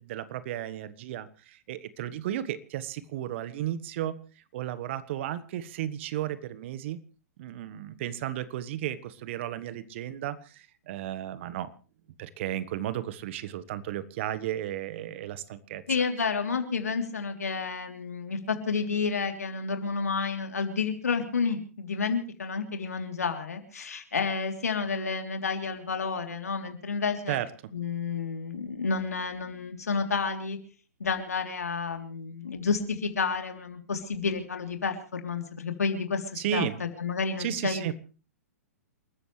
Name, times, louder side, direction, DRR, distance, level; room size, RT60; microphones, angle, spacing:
voice 1, 0.0-4.2 4.5-7.0 7.4-11.7 12.2-15.8 27.3-27.5 36.4-36.8 37.4-37.9, right 12 dB, 50° right, 15 dB, 1.4 m, -34 dB
voice 2, 15.9-27.4 27.7-30.6 31.0-36.7 37.0-37.9, left 5 dB, 80° left, 5 dB, 3.3 m, -30 dB
28.5 x 14.0 x 3.3 m, 0.36 s
figure-of-eight pair, 115°, 8 cm